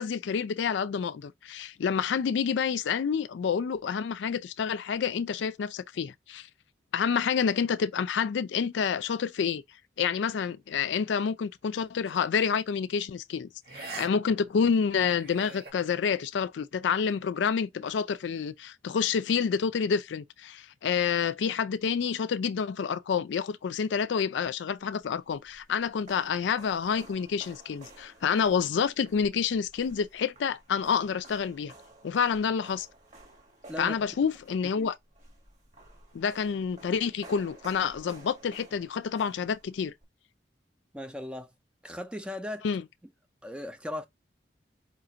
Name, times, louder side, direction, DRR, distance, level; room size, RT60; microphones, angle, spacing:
voice 1, 0.0-6.5 6.9-9.6 10.0-13.5 13.7-31.7 32.0-32.9 33.8-34.9 36.1-39.9 42.6-42.8, left 6 dB, 85° left, 0.4 m, -28 dB
sound 1, 12.1-12.3 13.6-14.1 14.4-14.5 15.0-15.7, right 3 dB, 55° right, 1.5 m, -42 dB
sound 2, 25.0-40.0, right 2 dB, 40° right, 1.2 m, -53 dB
voice 2, 33.7-34.1 34.8-34.9 40.9-41.5 41.8-42.7 43.4-44.1, left 1 dB, 5° right, 0.5 m, -37 dB
4.9 x 2.5 x 2.8 m
head